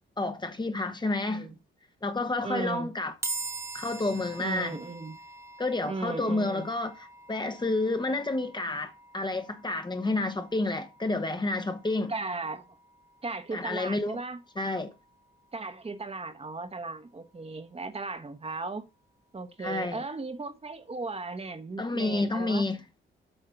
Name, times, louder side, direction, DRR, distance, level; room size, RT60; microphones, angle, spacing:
voice 1, 0.2-1.5 2.0-3.1 3.7-4.8 5.6-12.1 13.5-14.2 14.6-14.9 19.6-20.0 21.8-22.8, left 2 dB, 20° left, 1.0 m, -30 dB
voice 2, 1.2-1.6 2.4-2.9 4.4-5.2 5.9-6.7 12.1-12.7 13.2-14.4 15.5-18.8 19.3-22.6, right 3 dB, 30° right, 1.2 m, -36 dB
sound 1, 3.2-16.6, right 3 dB, 15° right, 0.9 m, -44 dB
8.1 x 4.1 x 5.7 m
cardioid pair, 85°, 21 cm